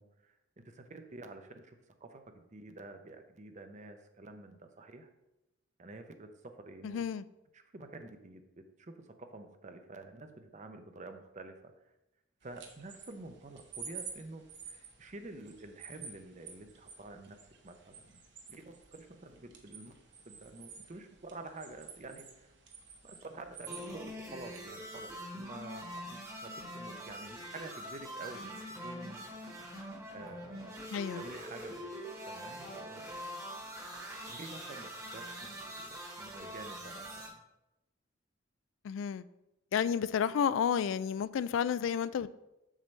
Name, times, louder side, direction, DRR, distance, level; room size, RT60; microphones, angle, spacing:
voice 1, 0.0-5.1 5.8-7.0 7.5-11.7 12.4-17.4 17.6-18.2 18.5-20.0 20.3-22.5 23.0-29.7 30.1-30.8 31.1-33.1 34.0-37.4, right 2 dB, 40° right, 0.7 m, -49 dB
voice 2, 6.8-7.2 30.9-31.2 38.8-39.3 39.7-42.3, left 7 dB, 75° left, 0.3 m, -31 dB
sound 1, 12.4-24.8, right 6 dB, 60° right, 1.1 m, -51 dB
sound 2, 23.7-37.3, equal, 15° right, 1.3 m, -44 dB
7.3 x 6.7 x 3.2 m
head